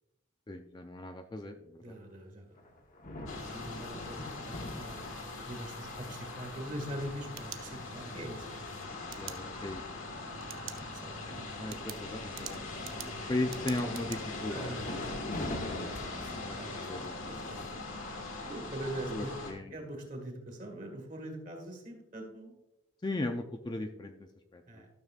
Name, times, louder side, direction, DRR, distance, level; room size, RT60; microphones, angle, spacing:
voice 1, 0.5-2.0 9.2-9.8 11.2-12.6 13.3-14.9 16.4-17.5 19.1-19.7 23.0-24.8, left 2 dB, 20° left, 6 dB, 0.3 m, -37 dB
voice 2, 1.8-2.6 3.4-8.5 10.5-11.4 14.5-15.1 16.6-16.8 17.3-22.6 24.7-24.9, right 1 dB, 35° right, 2 dB, 1.8 m, -43 dB
sound 1, 2.6-5.5 6.2-6.3 6.8-10.4 10.9-11.1 11.4-11.8 12.2-13.0 14.8-15.9, left 1 dB, 40° left, 0.9 m, -44 dB
sound 2, 3.3-19.5, left 2 dB, 75° left, 1.5 m, -41 dB
sound 3, 7.1-8.2 9.1-9.4 10.4-10.8 11.2-11.3 11.7-14.2, right 12 dB, 70° right, 0.6 m, -45 dB
12.5 x 6.7 x 2.4 m, 0.94 s
head